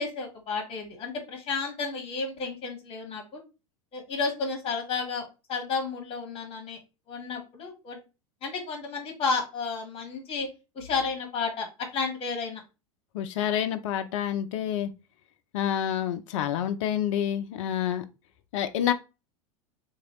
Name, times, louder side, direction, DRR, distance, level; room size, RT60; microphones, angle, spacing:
voice 1, 0.0-3.4 3.9-5.2 5.5-6.8 7.1-8.0 8.4-10.5 10.7-11.7 11.9-12.6, left 4 dB, 30° left, 1.4 m, -32 dB
voice 2, 13.1-14.9 15.5-18.0 18.5-18.9, left 10 dB, 60° left, 0.4 m, -28 dB
2.9 x 2.6 x 2.9 m
figure-of-eight pair, 90°, 18 cm